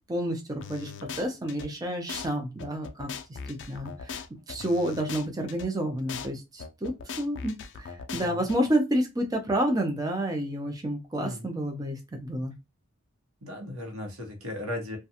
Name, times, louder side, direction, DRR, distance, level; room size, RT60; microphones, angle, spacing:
voice 1, 0.1-3.1 3.5-12.5, right 1 dB, 20° right, 3 dB, 0.5 m, -30 dB
sound 1, 0.6-1.7 2.1-2.3 2.6-5.7 6.1-6.3 6.6-8.6, left 6 dB, 55° left, 0.4 m, -39 dB
voice 2, 8.1-8.4 11.2-11.5 13.4-15.0, left 1 dB, 90° right, 2 dB, 1.0 m, -36 dB
2.4 x 2.2 x 2.7 m, 0.23 s
head